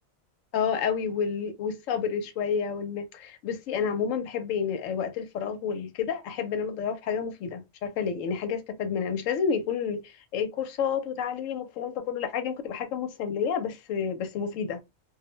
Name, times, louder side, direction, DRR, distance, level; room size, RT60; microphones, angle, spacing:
voice 1, 0.5-14.8, left 7 dB, 80° left, 0.9 m, -30 dB
2.4 x 2.1 x 2.9 m
omnidirectional pair, 1.4 m